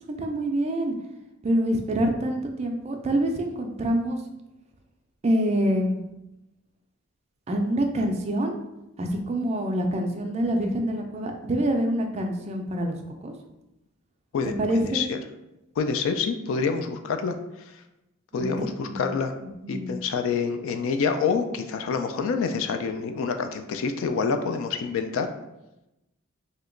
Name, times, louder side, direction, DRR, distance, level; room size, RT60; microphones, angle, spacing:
voice 1, 0.1-0.9 1.4-4.2 5.2-6.0 7.5-8.6 9.0-13.0 13.2-13.3 14.6-15.0 18.3-19.1 19.4-20.0, right 1 dB, 30° right, 4 dB, 0.3 m, -26 dB
voice 2, 15.8-17.4 18.3-19.3 19.7-25.3, left 5 dB, 65° left, 7 dB, 0.3 m, -27 dB
2.8 x 2.1 x 3.7 m, 0.92 s
head